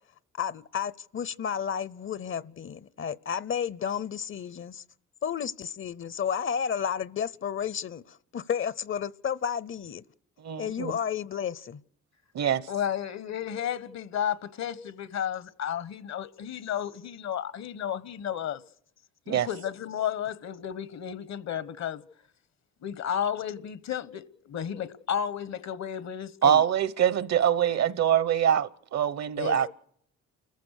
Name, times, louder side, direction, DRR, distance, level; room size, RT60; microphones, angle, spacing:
voice 1, 0.3-4.7 5.2-10.0 10.6-11.8, left 8 dB, 45° left, 0.7 m, -32 dB
voice 2, 10.4-10.9 12.3-12.7 19.3-19.5 26.4-29.7, right 9 dB, 60° right, 1.0 m, -24 dB
voice 3, 12.7-18.6 19.3-22.0 22.8-26.6 29.4-29.7, left 9 dB, 65° left, 1.2 m, -33 dB
29.5 x 15.0 x 6.5 m
cardioid pair, 90°, 30 cm